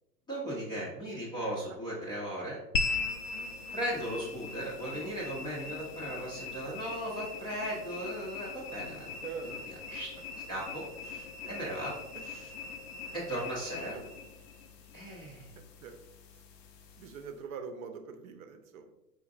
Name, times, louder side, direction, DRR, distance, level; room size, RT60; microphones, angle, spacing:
voice 1, 0.3-2.6 3.7-9.1 9.9-10.1 10.5-12.0 12.2-12.5 13.1-14.0 14.9-15.5, right 1 dB, 10° left, -5 dB, 0.5 m, -37 dB
sound 1, 2.7-17.4, left 4 dB, 80° left, 0.7 m, -40 dB
voice 2, 9.2-9.6 11.4-11.5 13.8-14.1 15.5-15.9 17.0-18.9, right 5 dB, 55° right, 6 dB, 0.7 m, -43 dB
4.4 x 3.8 x 2.4 m, 0.95 s
hypercardioid pair, 115°, 49 cm